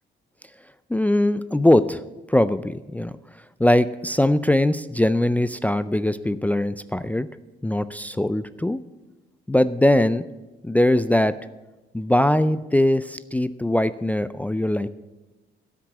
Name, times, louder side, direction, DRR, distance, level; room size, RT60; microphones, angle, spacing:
voice 1, 0.9-2.0 2.3-3.1 3.6-7.3 7.6-8.8 9.5-10.3 10.6-11.3 11.9-14.9, left 1 dB, 10° left, 14 dB, 0.4 m, -21 dB
13.0 x 6.1 x 8.2 m, 1.1 s
cardioid pair, 90°, 20 cm